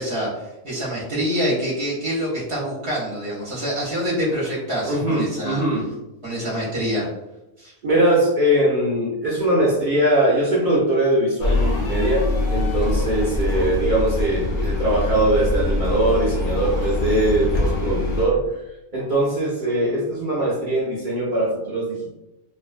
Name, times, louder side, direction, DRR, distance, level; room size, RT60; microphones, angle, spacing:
voice 1, 0.0-5.6 6.2-7.1 7.6-7.7, equal, 50° right, -6 dB, 0.8 m, -26 dB
voice 2, 4.9-5.9 7.8-18.6 18.9-22.1, right 1 dB, 70° right, -7 dB, 0.4 m, -21 dB
sound 1, 11.4-18.2, left 2 dB, 65° left, 0.5 m, -23 dB
2.5 x 2.2 x 2.4 m, 0.95 s
omnidirectional pair, 1.5 m